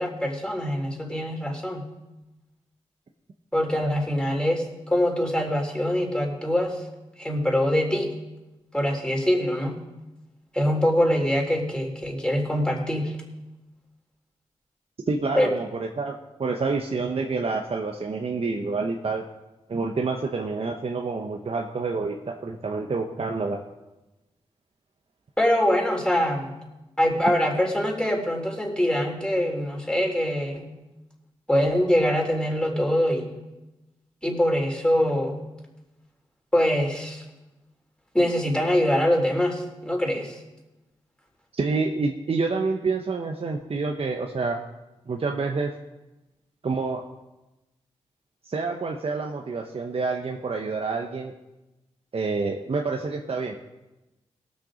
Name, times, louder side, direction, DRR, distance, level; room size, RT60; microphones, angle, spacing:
voice 1, 0.0-1.9 3.5-6.8 7.2-8.1 8.7-9.8 10.5-13.2 15.3-15.5 25.4-26.6 27.0-30.7 31.5-33.3 34.2-35.4 36.5-37.2 38.1-40.4, equal, 5° left, 0 dB, 3.7 m, -24 dB
voice 2, 15.1-19.2 19.7-23.6 41.6-44.6 45.1-45.7 46.6-47.0 48.4-51.3 52.1-53.8, right 4 dB, 55° right, 2 dB, 1.0 m, -28 dB
18.5 x 6.4 x 5.2 m, 1.0 s
cardioid pair, 50°, 12 cm